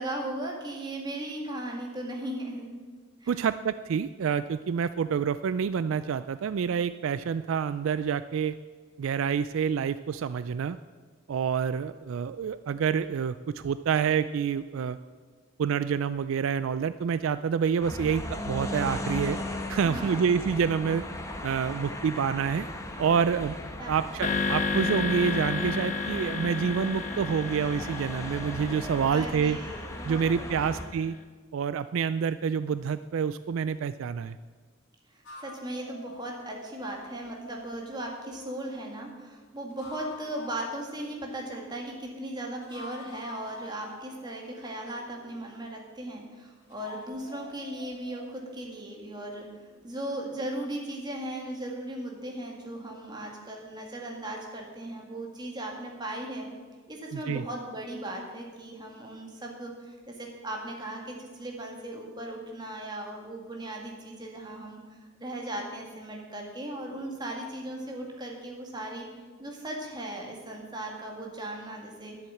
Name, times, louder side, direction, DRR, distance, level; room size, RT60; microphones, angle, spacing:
voice 1, 0.0-2.7 3.2-3.4 19.7-20.3 21.6-21.7 23.8-24.1 29.1-30.7 35.1-49.4 49.8-56.5 56.9-69.1 69.4-72.2, right 1 dB, 20° right, 0 dB, 2.0 m, -37 dB
voice 2, 3.3-8.6 9.0-10.8 11.3-15.0 15.6-19.4 19.7-21.0 21.4-22.7 23.0-23.5 23.9-29.6 30.0-31.2 31.5-34.4 57.1-57.4, right 7 dB, 65° right, 14 dB, 0.3 m, -27 dB
sound 1, 17.8-30.8, left 1 dB, 15° left, 1.0 m, -37 dB
sound 2, 24.2-30.6, left 4 dB, 35° left, 0.7 m, -32 dB
sound 3, 35.2-38.5 39.5-41.7 42.6-45.9 46.6-50.2, left 3 dB, 60° left, 4.4 m, -48 dB
10.5 x 7.8 x 8.5 m, 1.5 s
head